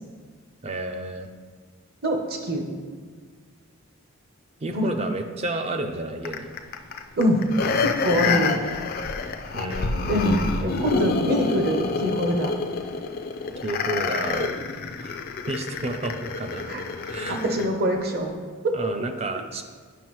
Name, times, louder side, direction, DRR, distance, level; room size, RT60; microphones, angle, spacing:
voice 1, 0.6-1.3 4.6-6.5 9.5-10.2 13.6-14.6 15.0-15.1 15.5-16.6 17.0-17.4 18.7-19.6, right 2 dB, 30° right, 6 dB, 0.4 m, -31 dB
voice 2, 2.0-2.6 4.7-4.9 7.2-7.4 7.8-8.6 10.1-12.5 16.7-16.8 17.3-18.3 18.6-18.8, equal, 45° right, 3 dB, 0.8 m, -24 dB
sound 1, 6.2-17.7 18.2-18.3, left 4 dB, 45° left, 0.4 m, -28 dB
8.9 x 6.0 x 3.1 m, 1.5 s
head